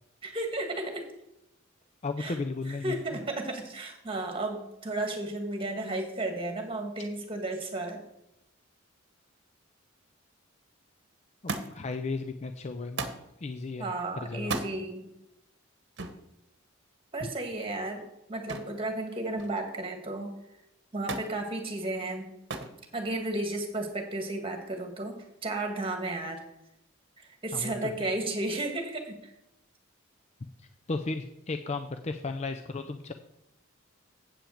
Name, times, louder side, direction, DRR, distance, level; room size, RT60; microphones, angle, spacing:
voice 1, 0.2-1.0 2.2-2.4 2.7-8.0 13.8-15.1 17.1-18.0 18.3-20.3 20.9-22.3 22.9-26.4 27.2-29.3, right 2 dB, 25° right, 3 dB, 1.8 m, -33 dB
voice 2, 2.0-3.2 11.4-13.1 13.4-13.9 14.2-14.5 27.5-28.1 30.6-33.1, left 3 dB, 35° left, 7 dB, 0.4 m, -35 dB
Thump thud, 11.5-12.0 13.0-13.3 14.4-14.7 16.0-16.2 18.5-18.8 19.2-19.7 21.1-21.4 22.5-22.8 23.7-24.2 25.2-25.3, right 3 dB, 55° right, 1.1 m, -35 dB
8.6 x 5.9 x 7.1 m, 0.85 s
head